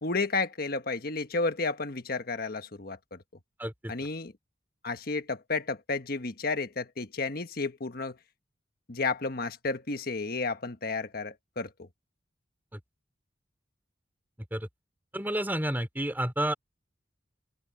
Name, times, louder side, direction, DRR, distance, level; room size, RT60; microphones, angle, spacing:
voice 1, 0.0-3.2 3.9-4.3 4.8-8.2 8.9-11.9, left 3 dB, 55° left, 1.4 m, -32 dB
voice 2, 15.1-16.5, right 1 dB, 10° right, 3.2 m, -30 dB
open air
head